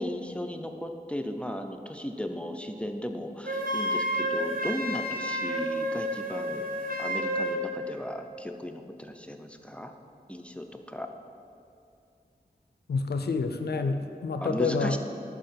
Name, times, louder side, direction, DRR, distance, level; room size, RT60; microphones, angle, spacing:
voice 1, 0.0-6.7 7.0-9.9 10.3-11.1 14.4-15.0, equal, 5° left, 5 dB, 0.4 m, -36 dB
Wind instrument woodwind instrument, 3.4-7.6, equal, 60° right, 0.7 m, -30 dB
voice 2, 12.9-15.0, left 4 dB, 80° left, 7 dB, 0.4 m, -28 dB
5.4 x 4.6 x 5.7 m, 2.5 s
wide cardioid pair, 50°, 17 cm